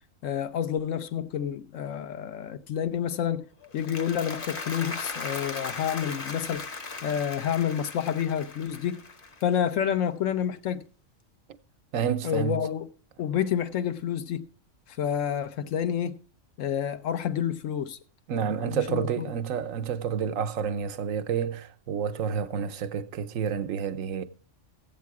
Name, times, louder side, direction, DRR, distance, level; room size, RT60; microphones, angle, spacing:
voice 1, 0.2-3.5 3.7-6.7 7.0-9.0 9.4-10.8 12.2-12.9 13.2-14.4 14.9-16.2 16.6-18.0 18.5-19.3, left 9 dB, 75° left, 1.1 m, -29 dB
Applause, 3.6-10.0, left 3 dB, 45° left, 1.2 m, -38 dB
voice 2, 11.9-12.6 18.3-24.3, right 7 dB, 80° right, 1.1 m, -29 dB
15.0 x 8.4 x 4.7 m
omnidirectional pair, 1.4 m